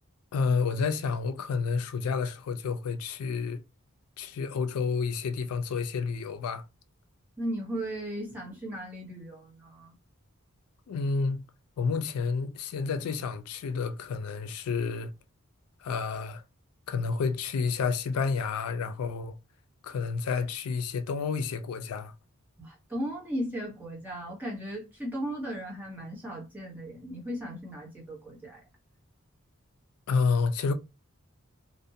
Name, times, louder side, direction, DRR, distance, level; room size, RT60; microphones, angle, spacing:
voice 1, 0.3-3.6 4.2-6.6 10.9-11.5 11.8-15.1 15.8-16.4 16.9-19.4 19.8-22.1 30.1-30.7, left 5 dB, 85° left, 0.4 m, -30 dB
voice 2, 7.4-10.0 22.6-28.6, equal, 10° right, 0.9 m, -36 dB
2.5 x 2.1 x 2.6 m
head